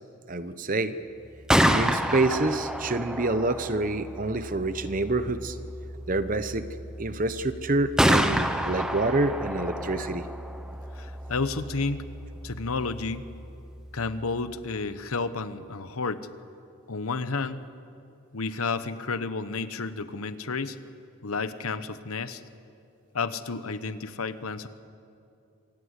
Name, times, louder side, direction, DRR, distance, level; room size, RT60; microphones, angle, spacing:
voice 1, 0.3-0.9 1.6-5.6 6.1-6.7 7.0-10.3, right 2 dB, 40° right, 12 dB, 0.9 m, -27 dB
Gunshot gunfire, 1.2-15.1, equal, 5° right, 1.0 m, -30 dB
voice 2, 10.9-12.1 12.4-13.3 13.9-16.3 16.9-17.6 18.3-20.8 21.2-22.4 23.1-24.7, left 4 dB, 80° left, 12 dB, 1.0 m, -31 dB
26.0 x 17.5 x 8.3 m, 2.6 s
head